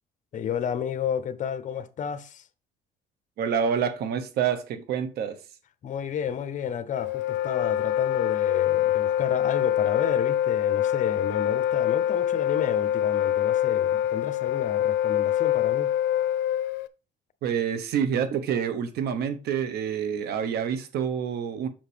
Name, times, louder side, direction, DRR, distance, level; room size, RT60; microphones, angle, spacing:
voice 1, 0.3-2.4 5.8-15.9, left 8 dB, 50° left, 0.9 m, -31 dB
voice 2, 3.4-5.4 17.4-21.7, right 7 dB, 70° right, 1.1 m, -27 dB
Wind instrument woodwind instrument, 6.9-16.9, left 11 dB, 80° left, 0.6 m, -25 dB
7.2 x 5.8 x 3.4 m
cardioid pair, 110°, 17 cm